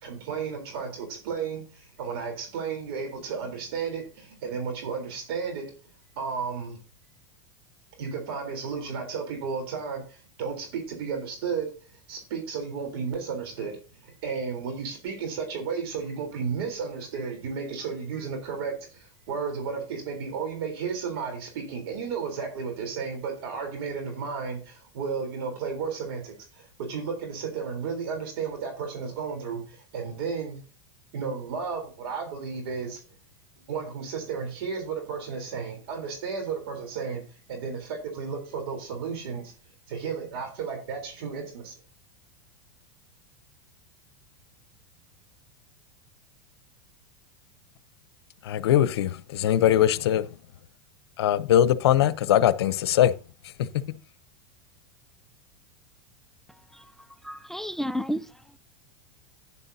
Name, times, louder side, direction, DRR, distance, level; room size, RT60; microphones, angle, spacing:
voice 1, 0.0-5.7 6.2-6.8 8.0-11.7 12.1-30.6 31.1-33.0 33.7-39.5 39.9-41.7, right 5 dB, 70° right, 3.6 m, -33 dB
voice 2, 48.4-50.3 51.2-53.1 53.6-53.7, left 11 dB, 80° left, 0.7 m, -21 dB
voice 3, 57.2-58.3, equal, 5° left, 0.3 m, -31 dB
11.0 x 9.7 x 2.7 m
supercardioid pair, 125°, 13 cm